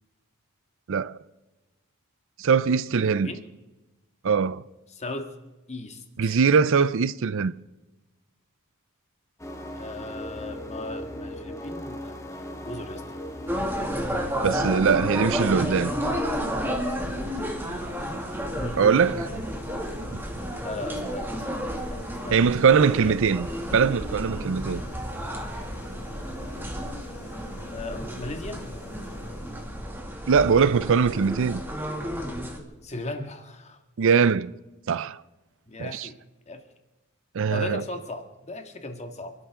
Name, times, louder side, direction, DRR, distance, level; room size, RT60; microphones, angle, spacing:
voice 1, 2.4-3.3 4.2-4.6 6.2-7.5 14.4-15.9 18.8-19.3 22.3-23.5 23.7-24.8 30.3-31.6 34.0-34.5 34.9-35.2 35.8-36.1 37.3-37.8, right 6 dB, 60° right, 0.5 m, -21 dB
voice 2, 3.0-3.4 4.9-5.3 5.7-6.4 9.8-13.0 18.5-18.8 20.6-23.2 27.7-28.6 32.8-33.8 35.7-36.2 36.5-36.7 37.5-39.3, left 2 dB, 30° left, 1.9 m, -37 dB
sound 1, 9.4-16.4, equal, 15° left, 1.6 m, -37 dB
sound 2, 13.5-32.6, equal, 10° right, 2.2 m, -32 dB
sound 3, 15.5-30.1, left 2 dB, 85° left, 1.9 m, -45 dB
29.0 x 12.5 x 3.7 m
head